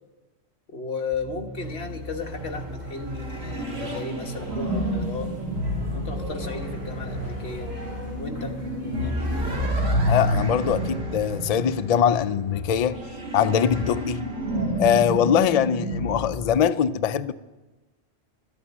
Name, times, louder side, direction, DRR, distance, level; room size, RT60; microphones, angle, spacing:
voice 1, 0.7-5.5 5.9-7.8 8.2-8.6, left 3 dB, 55° left, 1.6 m, -34 dB
sound 1, 1.1-11.8, equal, 85° right, 2.8 m, -39 dB
sound 2, 1.5-9.4, right 1 dB, 35° right, 4.3 m, -43 dB
sound 3, 2.3-16.3, equal, 55° right, 2.5 m, -29 dB
voice 2, 10.1-13.0 13.3-14.3 14.8-17.3, left 8 dB, 85° left, 0.3 m, -22 dB
12.5 x 8.9 x 9.3 m
omnidirectional pair, 1.3 m